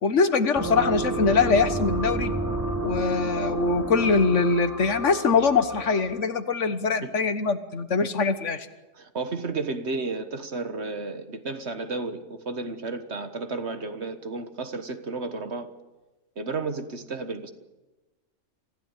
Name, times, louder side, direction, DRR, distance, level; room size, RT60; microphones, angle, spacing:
voice 1, 0.0-2.3 2.8-8.7, left 4 dB, 65° left, 10 dB, 1.6 m, -23 dB
sound 1, 0.5-6.2, right 2 dB, 15° right, 3.6 m, -30 dB
voice 2, 8.9-15.7 16.3-17.5, right 3 dB, 55° right, 8 dB, 1.7 m, -32 dB
25.5 x 16.0 x 9.1 m, 1.1 s
omnidirectional pair, 1.4 m